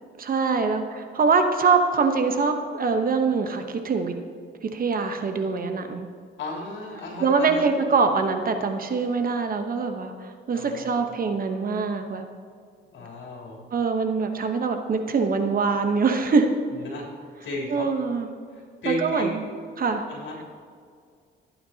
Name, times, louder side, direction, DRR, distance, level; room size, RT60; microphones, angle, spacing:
voice 1, 0.2-4.1 4.6-6.1 7.2-12.3 13.7-16.5 17.7-18.3 18.8-19.4 19.8-20.1, right 4 dB, 45° right, 6 dB, 1.0 m, -24 dB
voice 2, 6.4-7.6 10.5-11.0 12.8-13.6 16.8-17.1 17.4-17.9 18.8-19.4 20.1-20.4, equal, 70° left, -3 dB, 3.3 m, -33 dB
18.5 x 9.2 x 2.9 m, 2.2 s
cardioid pair, 90°, 20 cm